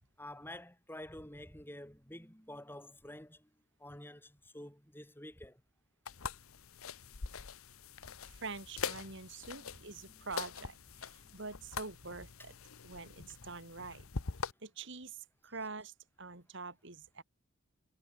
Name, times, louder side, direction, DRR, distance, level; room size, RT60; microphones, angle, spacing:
voice 1, 0.2-3.5 3.8-5.6 9.5-9.7 10.0-10.2 11.2-11.4, left 1 dB, 10° left, 7.6 m, -49 dB
sound 1, 6.1-14.5, left 5 dB, 85° left, 1.0 m, -44 dB
voice 2, 8.2-12.5 12.8-14.1 14.6-17.2, right 4 dB, 60° right, 3.1 m, -45 dB
head